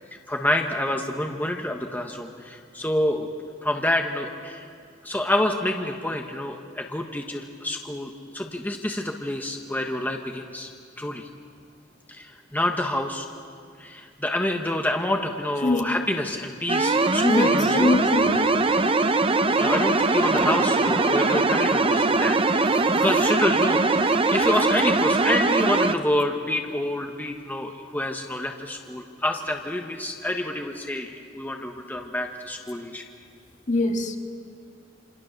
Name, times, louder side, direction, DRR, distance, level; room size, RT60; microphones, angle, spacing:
voice 1, 0.3-3.3 3.6-4.7 5.0-10.7 11.0-11.3 12.1-13.3 13.8-17.9 19.6-33.0, left 1 dB, 10° left, 1.3 m, -27 dB
voice 2, 15.6-16.0 17.2-18.5 33.7-34.2, left 2 dB, 40° left, 1.7 m, -23 dB
sound 1, 16.7-25.9, right 3 dB, 30° right, 0.8 m, -21 dB
27.5 x 27.5 x 6.7 m
head